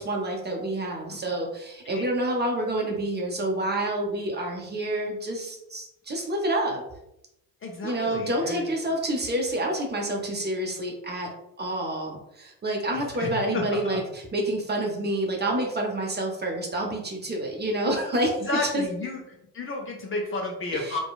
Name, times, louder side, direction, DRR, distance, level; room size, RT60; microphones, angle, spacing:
voice 1, 0.0-6.8 7.8-11.3 11.6-18.8 20.7-21.0, right 1 dB, 20° right, 0 dB, 0.6 m, -28 dB
voice 2, 7.6-8.7 13.1-14.0 18.4-19.2 19.5-21.0, left 2 dB, 30° left, 0 dB, 0.5 m, -32 dB
2.8 x 2.2 x 2.3 m, 0.83 s
hypercardioid pair, 50°, 47 cm